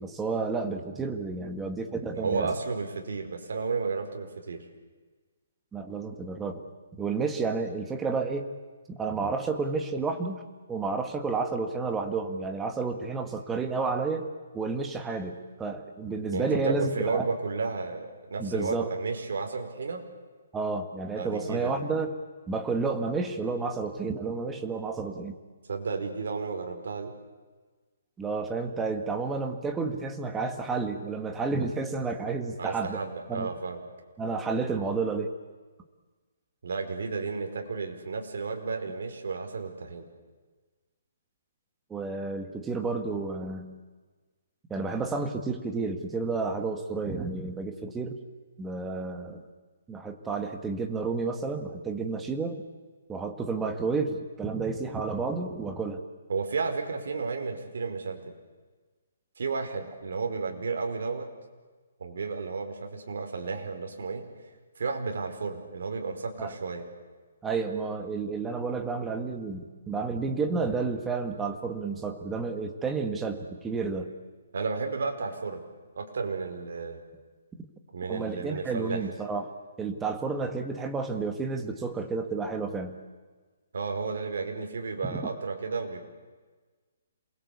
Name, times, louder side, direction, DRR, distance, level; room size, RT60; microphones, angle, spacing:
voice 1, 0.0-2.5 5.7-6.6 6.9-8.5 8.9-14.3 14.5-17.3 18.4-18.9 20.5-22.1 22.5-25.3 28.2-33.0 33.3-33.5 34.2-35.3 41.9-43.8 44.7-48.2 48.6-49.4 49.9-52.6 53.1-56.0 66.4-66.5 67.4-74.1 78.1-79.5 79.8-83.0 85.1-85.2, right 4 dB, 10° right, 6 dB, 1.7 m, -31 dB
voice 2, 2.1-4.6 16.3-20.0 21.2-21.8 25.7-27.1 32.6-33.8 36.6-40.1 56.3-58.2 59.4-61.3 62.0-64.2 64.8-66.9 74.5-75.6 75.9-77.0 77.9-79.0 83.7-86.1, right 4 dB, 70° right, 4 dB, 4.9 m, -32 dB
27.5 x 21.5 x 8.5 m, 1.4 s
hypercardioid pair, 170°, 0 cm